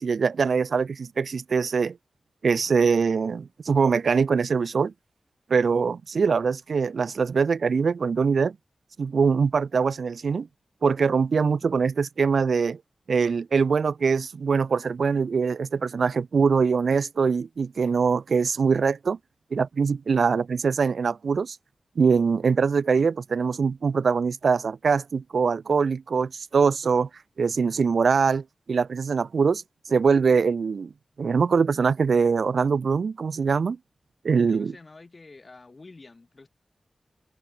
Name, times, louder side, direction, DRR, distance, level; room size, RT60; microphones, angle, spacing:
voice 1, 0.0-2.0 2.4-4.9 5.5-8.6 9.0-10.5 10.8-12.8 13.1-19.2 19.5-21.6 22.0-27.1 27.4-29.6 29.9-30.9 31.2-33.8 34.2-34.7, right 5 dB, 80° right, 0.4 m, -23 dB
voice 2, 34.5-36.5, left 3 dB, 40° left, 7.3 m, -48 dB
wide cardioid pair, 100°, 0 cm